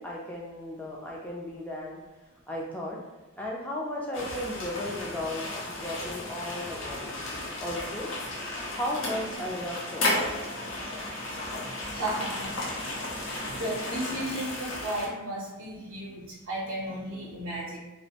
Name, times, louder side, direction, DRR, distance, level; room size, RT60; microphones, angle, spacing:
voice 1, 0.0-2.0 2.5-3.0 3.4-5.5 5.8-7.2 7.6-8.1 8.7-10.1, left 1 dB, 5° left, -3 dB, 0.3 m, -35 dB
sound 1, 4.1-15.1, left 2 dB, 80° left, 0.6 m, -34 dB
voice 2, 11.9-12.5 13.5-17.8, right 1 dB, 85° right, -6 dB, 0.6 m, -34 dB
2.5 x 2.0 x 2.8 m, 1.2 s
head